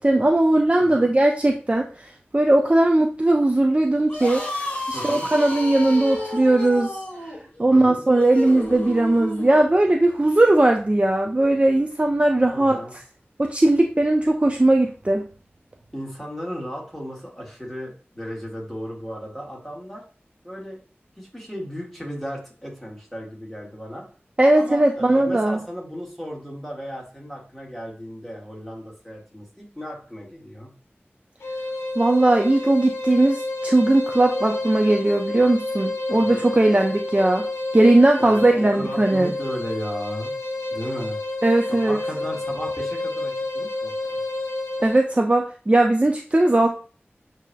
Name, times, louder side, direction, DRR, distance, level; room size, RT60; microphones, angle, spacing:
voice 1, 0.0-2.1 2.3-7.0 7.6-12.8 13.4-15.3 24.4-25.6 32.0-37.5 37.7-39.3 41.4-42.0 44.8-46.7, right 2 dB, 30° right, 2 dB, 0.5 m, -19 dB
voice 2, 0.8-1.1 4.9-5.3 7.7-8.1 12.5-12.9 15.9-20.0 20.4-20.8 21.2-24.1 24.5-30.7 36.1-36.5 38.2-40.3 40.7-41.2 41.7-44.2, equal, 5° left, -3 dB, 1.7 m, -35 dB
sound 1, 4.0-9.6, left 1 dB, 35° left, 1.6 m, -31 dB
sound 2, 31.4-45.1, left 2 dB, 90° left, 0.6 m, -30 dB
8.1 x 2.9 x 2.3 m, 0.37 s
wide cardioid pair, 60°, 4 cm